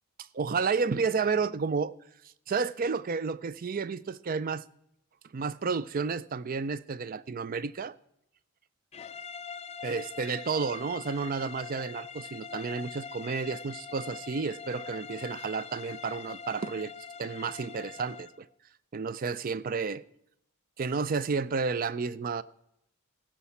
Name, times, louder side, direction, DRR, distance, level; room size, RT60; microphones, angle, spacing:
voice 1, 0.2-1.9 2.5-4.6 5.3-7.9 9.8-16.9 17.2-18.5 18.9-20.0 20.8-22.4, right 5 dB, 40° right, 0.4 m, -31 dB
sound 1, 8.9-18.4, left 6 dB, 30° left, 0.4 m, -43 dB
15.5 x 5.8 x 7.1 m
head